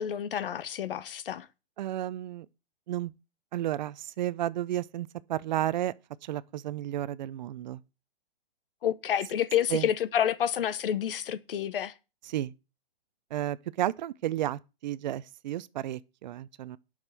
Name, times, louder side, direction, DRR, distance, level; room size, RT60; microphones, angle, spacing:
voice 1, 0.0-1.4 8.8-11.9, left 10 dB, 65° left, 1.2 m, -29 dB
voice 2, 1.8-2.5 2.9-3.1 3.5-5.9 6.2-7.8 9.7-9.9 12.3-12.5 13.3-16.8, right 13 dB, 50° right, 0.6 m, -32 dB
8.8 x 6.4 x 7.6 m
hypercardioid pair, 140°, 30 cm